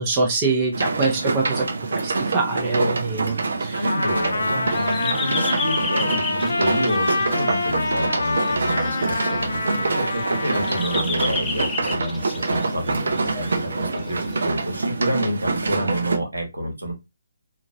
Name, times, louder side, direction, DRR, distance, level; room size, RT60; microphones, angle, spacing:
voice 1, 0.0-4.0, right 3 dB, 25° right, 0 dB, 0.7 m, -24 dB
sound 1, 0.7-16.2, right 3 dB, 60° right, 0.5 m, -26 dB
voice 2, 3.7-16.9, equal, 80° right, 2 dB, 1.1 m, -28 dB
Trumpet, 3.8-11.1, left 3 dB, 65° left, 0.7 m, -26 dB
sound 2, 4.7-14.5, left 4 dB, 10° left, 0.4 m, -33 dB
2.8 x 2.5 x 2.6 m, 0.22 s
figure-of-eight pair, 140°, 0 cm